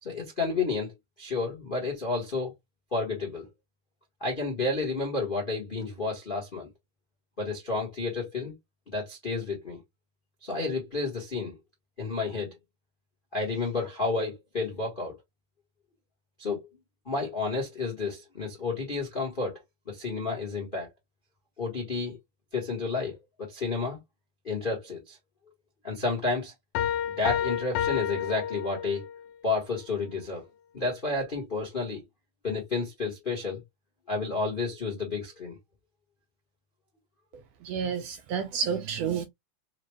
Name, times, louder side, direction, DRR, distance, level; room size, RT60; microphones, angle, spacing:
voice 1, 0.0-2.5 2.9-3.5 4.2-6.7 7.4-8.5 8.9-9.8 10.4-11.6 12.0-12.6 13.3-15.2 16.4-16.6 17.0-19.6 19.9-20.9 21.6-22.2 22.5-24.0 24.4-25.2 25.8-26.5 27.0-29.1 29.4-30.4 30.7-32.0 32.4-33.6 34.1-35.6, left 3 dB, 60° left, 0.5 m, -31 dB
sound 1, 26.7-29.2, left 10 dB, 85° left, 2.0 m, -30 dB
voice 2, 37.6-39.3, right 7 dB, 80° right, 1.5 m, -30 dB
4.9 x 2.2 x 3.0 m
omnidirectional pair, 3.3 m